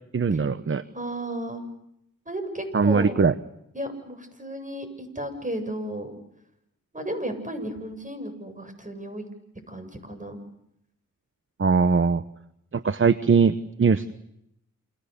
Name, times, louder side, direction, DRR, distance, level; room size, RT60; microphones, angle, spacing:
voice 1, 0.1-0.8 2.7-3.3 11.6-12.2 12.7-14.1, right 5 dB, 40° right, 13 dB, 1.1 m, -21 dB
voice 2, 0.9-1.6 2.3-3.2 3.7-6.1 6.9-9.2 9.7-10.4, right 1 dB, 25° right, 7 dB, 7.8 m, -33 dB
29.0 x 27.0 x 6.9 m, 0.79 s
cardioid pair, 65°, 32 cm